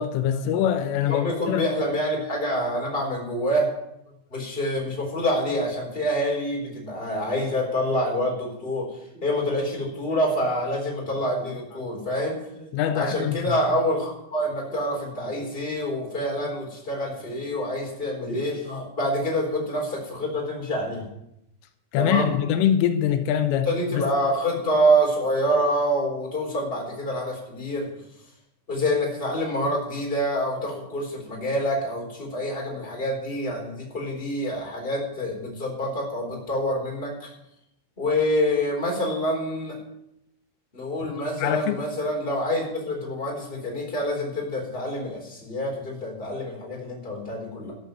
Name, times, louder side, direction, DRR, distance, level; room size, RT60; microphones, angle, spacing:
voice 1, 0.0-1.7 12.7-13.5 21.9-24.0 41.2-41.8, left 9 dB, 85° left, 3.4 m, -24 dB
voice 2, 1.1-3.7 4.3-12.7 12.9-21.0 21.9-22.3 23.6-27.9 28.7-37.3 38.0-39.7 40.7-47.7, equal, 15° left, 3.3 m, -26 dB
12.5 x 7.7 x 7.8 m
omnidirectional pair, 5.8 m